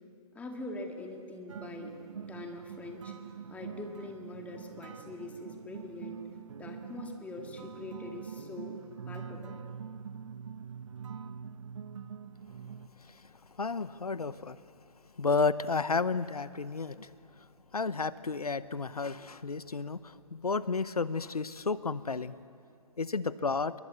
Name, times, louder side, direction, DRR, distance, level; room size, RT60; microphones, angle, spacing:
voice 1, 0.3-1.9 2.3-3.2 3.5-6.2 6.6-8.8 9.1-9.6, left 2 dB, 5° left, 3 dB, 2.3 m, -43 dB
sound 1, 1.5-12.9, right 7 dB, 55° right, 1.0 m, -44 dB
voice 2, 13.0-13.3 13.6-14.6 15.2-17.1 17.4-17.5 17.7-22.4 23.0-23.7, left 4 dB, 80° left, 16 dB, 0.9 m, -32 dB
28.0 x 23.5 x 8.4 m, 2.4 s
figure-of-eight pair, 135°, 19 cm